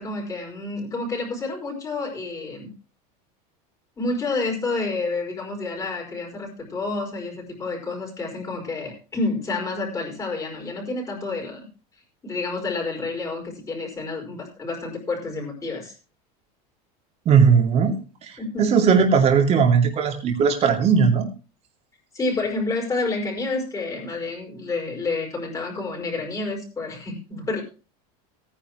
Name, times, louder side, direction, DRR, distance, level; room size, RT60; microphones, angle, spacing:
voice 1, 0.0-2.7 4.0-11.7 12.2-15.9 18.4-18.8 22.1-27.6, left 3 dB, 15° left, -1 dB, 5.1 m, -29 dB
voice 2, 17.3-21.3, right 6 dB, 30° right, 2 dB, 2.6 m, -18 dB
18.0 x 9.9 x 3.1 m, 0.34 s
supercardioid pair, 145°, 20 cm